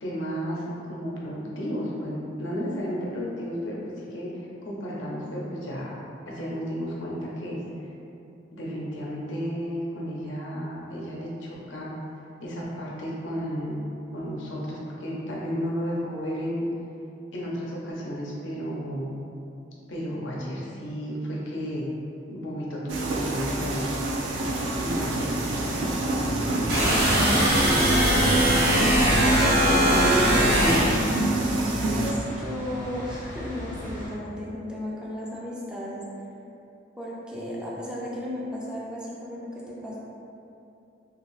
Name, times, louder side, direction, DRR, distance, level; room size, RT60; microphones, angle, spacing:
voice 1, 0.0-5.9 6.3-7.6 8.5-11.9 12.4-13.8 14.1-16.7 17.3-19.2 19.9-21.8 22.3-23.8 24.8-27.1 28.4-29.0 29.6-31.1, equal, 85° left, -4 dB, 0.6 m, -32 dB
sound 1, 22.9-32.1, right 2 dB, 80° right, 0.4 m, -27 dB
sound 2, 24.2-34.1, equal, 45° left, 0.8 m, -35 dB
sound 3, 26.7-31.1, right 1 dB, 55° right, 0.9 m, -21 dB
voice 2, 29.4-30.6 32.0-36.0 37.0-40.0, left 1 dB, 5° right, -6 dB, 0.4 m, -35 dB
2.6 x 2.4 x 3.1 m, 2.7 s
head